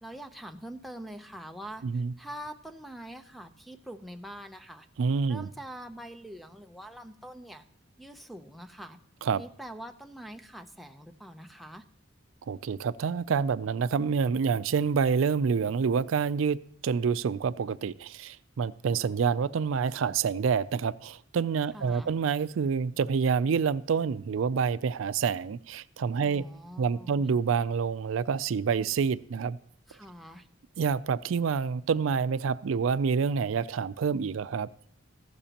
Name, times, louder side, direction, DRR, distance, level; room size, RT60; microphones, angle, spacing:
voice 1, 0.0-4.9 5.3-7.7 8.0-9.0 9.3-11.8 21.7-22.1 26.2-27.3 29.9-30.5, right 1 dB, ahead, 9 dB, 0.6 m, -44 dB
voice 2, 1.8-2.1 5.0-5.5 9.2-9.4 12.5-16.6 16.8-26.4 26.8-29.6 30.8-34.7, right 6 dB, 80° right, 16 dB, 0.4 m, -27 dB
14.5 x 12.0 x 2.9 m, 0.66 s
head